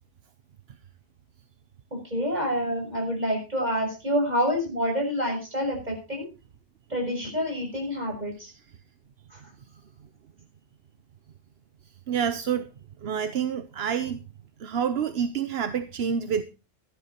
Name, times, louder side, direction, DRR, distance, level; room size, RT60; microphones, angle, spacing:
voice 1, 2.0-6.3 6.9-8.5 9.3-9.4, equal, 45° right, 7.1 m, -27 dB
voice 2, 12.1-12.7 13.0-14.2 14.6-16.4, right 7 dB, 80° right, 1.1 m, -28 dB
15.0 x 11.5 x 4.4 m
omnidirectional pair, 1.0 m